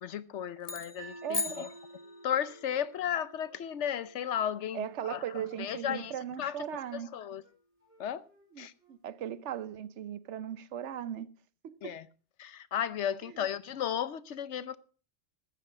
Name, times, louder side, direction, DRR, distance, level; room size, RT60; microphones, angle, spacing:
voice 1, 0.0-1.7 2.2-6.6 6.9-7.4 8.0-8.2 8.6-8.7 11.8-12.1 12.4-14.8, left 9 dB, 85° left, 1.1 m, -34 dB
sound 1, 0.6-2.5, left 3 dB, 35° left, 1.3 m, -38 dB
sound 2, 1.0-7.1, right 2 dB, 30° right, 2.2 m, -54 dB
voice 2, 1.2-1.7 4.7-7.1 8.5-11.3 11.6-11.9, right 9 dB, 85° right, 1.1 m, -38 dB
Wind instrument woodwind instrument, 1.6-5.0 5.4-8.5 8.8-9.0, equal, 60° right, 3.8 m, -64 dB
13.5 x 9.7 x 5.0 m
omnidirectional pair, 1.2 m